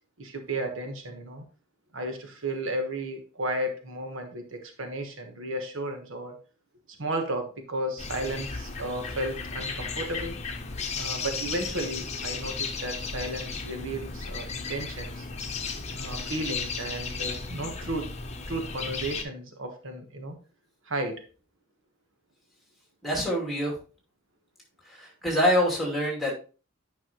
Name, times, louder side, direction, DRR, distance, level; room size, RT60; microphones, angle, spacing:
voice 1, 0.2-1.4 1.9-6.4 7.0-10.4 11.0-15.3 15.9-18.1 18.5-20.4 20.8-21.2, right 1 dB, 75° right, 5 dB, 1.3 m, -33 dB
sound 1, 8.0-19.2, left 4 dB, 35° left, 0.9 m, -35 dB
voice 2, 23.0-23.7 24.9-26.3, equal, ahead, -3 dB, 2.7 m, -25 dB
9.2 x 5.6 x 3.0 m, 0.35 s
head